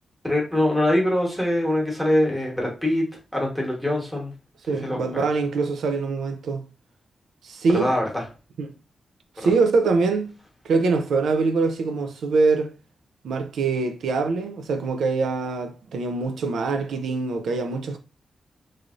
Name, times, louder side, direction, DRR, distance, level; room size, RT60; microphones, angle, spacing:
voice 1, 0.2-3.1 3.3-4.3 4.7-5.3 7.7-8.2 9.4-9.5, left 1 dB, ahead, 1.0 m, -23 dB
voice 2, 4.7-6.6 7.4-7.9 8.6-8.7 9.4-10.3 10.6-12.7 13.2-18.0, right 4 dB, 90° right, 0.4 m, -23 dB
2.9 x 2.6 x 2.4 m
wide cardioid pair, 110°, 0 cm